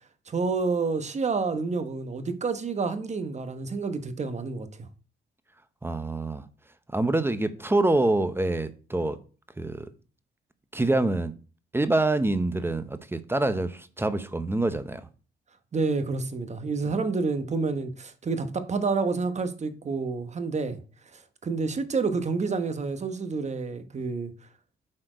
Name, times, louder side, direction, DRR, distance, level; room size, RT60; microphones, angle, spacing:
voice 1, 0.3-4.9 15.7-20.8 21.1-24.3, right 4 dB, 35° right, 1.1 m, -29 dB
voice 2, 5.8-6.4 6.9-9.2 9.6-9.9 10.7-11.3 11.7-15.1, right 2 dB, 10° right, 0.7 m, -26 dB
7.8 x 4.4 x 5.0 m
cardioid pair, 90°, 20 cm